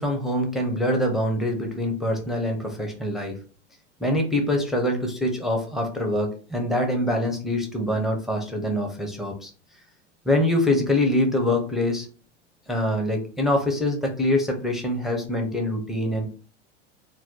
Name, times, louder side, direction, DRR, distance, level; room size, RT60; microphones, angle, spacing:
voice 1, 0.0-3.4 4.0-9.5 10.3-12.1 12.7-16.3, left 1 dB, ahead, 1 dB, 0.4 m, -24 dB
2.6 x 2.2 x 3.6 m, 0.39 s
hypercardioid pair, 95°, 37 cm